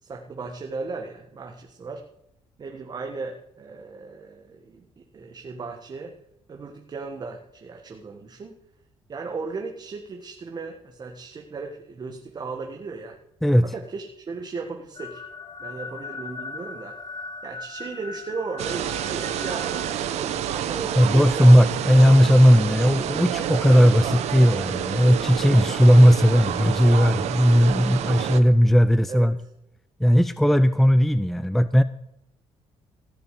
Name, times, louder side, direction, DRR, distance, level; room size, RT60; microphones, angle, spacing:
voice 1, 0.0-2.0 2.6-6.1 6.5-8.6 9.1-13.2 13.6-15.2 15.6-17.0 17.4-21.5 29.1-29.5, right 4 dB, 35° right, 3 dB, 1.6 m, -36 dB
sound 1, 14.9-19.9, left 3 dB, 40° left, 1.3 m, -38 dB
sound 2, 18.6-28.4, right 10 dB, 75° right, 1.2 m, -29 dB
voice 2, 21.0-29.4 30.0-31.8, equal, ahead, 14 dB, 0.5 m, -17 dB
17.5 x 6.8 x 8.3 m, 0.81 s
cardioid pair, 105°, 11 cm